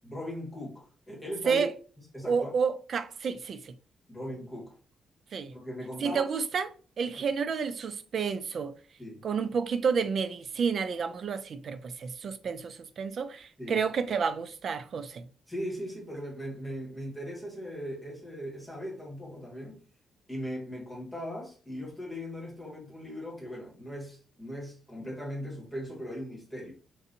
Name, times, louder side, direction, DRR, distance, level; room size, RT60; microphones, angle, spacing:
voice 1, 0.0-1.6 2.1-2.5 4.1-4.8 5.5-6.2 7.1-7.2 9.0-9.2 13.6-13.8 15.5-19.8 20.3-26.7, equal, 5° left, 1.5 m, -39 dB
voice 2, 2.3-3.7 5.3-5.5 6.0-8.7 9.2-15.2, right 6 dB, 45° right, 0.3 m, -30 dB
3.9 x 2.5 x 2.6 m
cardioid pair, 150°, 0 cm